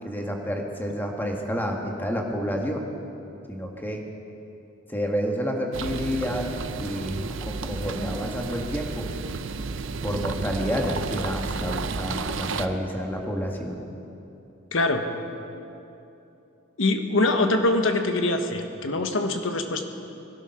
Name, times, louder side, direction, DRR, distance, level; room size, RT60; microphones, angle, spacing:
voice 1, 0.0-2.9 3.5-4.0 4.9-6.5 6.7-9.1 10.0-13.8, equal, 10° left, 1 dB, 1.6 m, -29 dB
sound 1, 5.7-12.7, right 4 dB, 70° right, 0.6 m, -32 dB
voice 2, 14.7-15.1 16.8-19.8, left 2 dB, 75° left, 6 dB, 1.3 m, -23 dB
20.0 x 12.5 x 5.9 m, 2.8 s
head